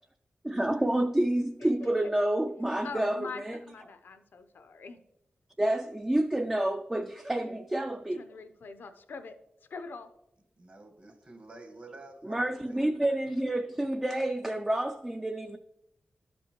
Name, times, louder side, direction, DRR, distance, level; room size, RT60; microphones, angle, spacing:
voice 1, 0.4-3.6 5.6-8.3 12.2-15.6, right 1 dB, 15° right, 0.3 m, -29 dB
voice 2, 1.6-1.9 2.8-5.0 8.1-9.4 9.7-10.1, left 4 dB, 75° left, 0.6 m, -43 dB
voice 3, 10.6-12.9, right 2 dB, 40° right, 1.2 m, -49 dB
11.5 x 5.3 x 2.9 m
wide cardioid pair, 95°, 3 cm